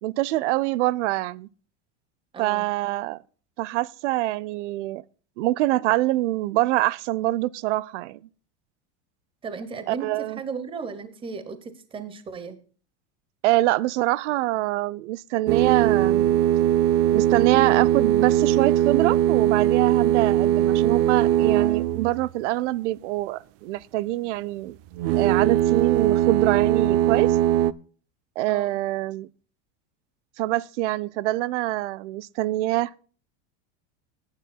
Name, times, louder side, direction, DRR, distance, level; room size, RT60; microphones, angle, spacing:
voice 1, 0.0-1.5 2.4-3.2 3.6-5.0 5.4-8.2 9.9-10.4 13.4-16.4 17.1-24.8 25.1-27.4 28.4-29.3 30.4-33.0, right 17 dB, 85° right, 0.6 m, -25 dB
voice 2, 2.3-2.7 9.4-12.6 28.5-28.8, right 5 dB, 15° right, 1.0 m, -35 dB
sound 1, 15.5-22.3 24.9-27.7, right 12 dB, 45° right, 0.5 m, -20 dB
19.0 x 9.7 x 2.3 m
supercardioid pair, 150°, 34 cm